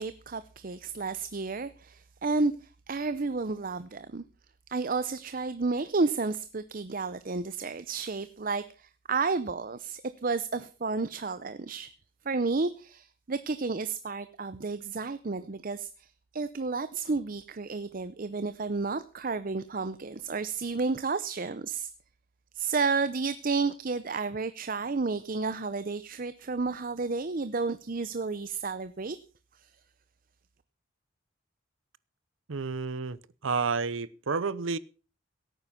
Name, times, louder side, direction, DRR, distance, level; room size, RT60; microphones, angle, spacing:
voice 1, 0.0-4.2 4.7-11.9 12.2-21.9 22.5-29.2 29.5-29.7, right 4 dB, 45° right, 0.6 m, -31 dB
voice 2, 32.5-33.2 33.4-34.8, right 4 dB, 80° right, 0.7 m, -30 dB
17.0 x 9.2 x 5.7 m
head